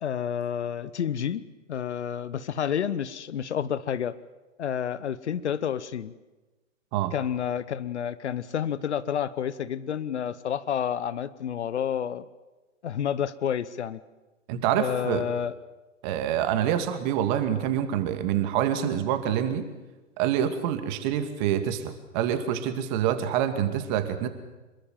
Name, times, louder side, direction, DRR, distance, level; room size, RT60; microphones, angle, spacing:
voice 1, 0.0-4.2 4.6-6.1 7.1-12.2 12.8-14.0 14.7-15.5, left 8 dB, 60° left, 17 dB, 1.1 m, -29 dB
voice 2, 14.5-15.2 16.0-19.7 20.2-24.3, right 10 dB, 35° right, 8 dB, 2.5 m, -26 dB
26.0 x 22.5 x 7.5 m, 1.1 s
figure-of-eight pair, 110°, 38 cm